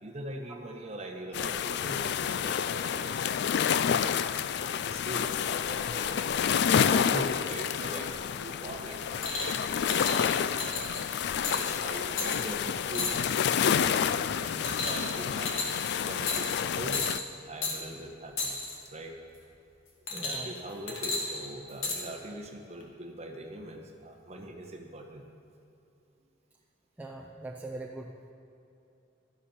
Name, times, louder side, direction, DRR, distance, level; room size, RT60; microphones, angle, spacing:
voice 1, 0.0-3.2 3.9-6.5 6.8-13.2 13.7-14.1 14.4-17.1 17.4-18.5 18.8-19.1 20.1-25.2, right 1 dB, 30° right, 2 dB, 1.2 m, -42 dB
sound 1, 1.3-17.2, left 8 dB, 55° left, 0.3 m, -29 dB
sound 2, 9.2-9.5 9.9-10.2 10.6-11.0 11.4-11.7 12.2-12.4 12.9-13.4 13.8-14.1 14.6-15.2 15.5-15.9 16.3-16.6 16.9-17.2 17.6-17.8 18.4-18.8 20.1-20.6 20.9-22.0 22.8-22.9, left 3 dB, 80° left, 2.1 m, -33 dB
voice 2, 20.1-20.5 27.0-28.3, right 2 dB, 10° right, -2 dB, 0.6 m, -41 dB
13.0 x 12.0 x 4.3 m, 2.7 s
head